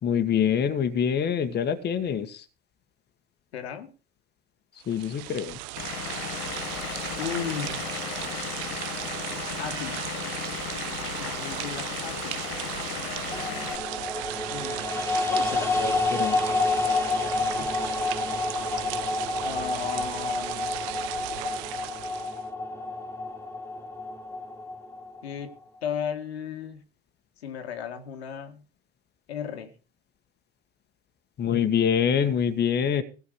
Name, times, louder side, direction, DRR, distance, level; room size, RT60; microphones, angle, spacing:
voice 1, 0.0-2.4 4.9-5.6 15.8-16.4 31.4-33.0, left 8 dB, 35° left, 1.6 m, -25 dB
voice 2, 3.5-3.9 7.2-7.9 9.6-10.0 11.2-12.4 14.5-14.9 15.3-15.8 17.2-17.3 17.6-17.8 18.5-18.7 19.4-20.8 25.2-25.5 25.8-26.8 27.4-28.6 29.3-29.7, left 7 dB, 85° left, 2.0 m, -35 dB
sound 1, 4.8-22.4, right 16 dB, 60° right, 1.0 m, -36 dB
Vehicle / Engine, 5.8-13.8, left 13 dB, 55° left, 1.2 m, -35 dB
sound 2, 13.3-25.5, left 3 dB, 10° left, 2.3 m, -29 dB
15.5 x 6.5 x 6.7 m
hypercardioid pair, 90°, 31 cm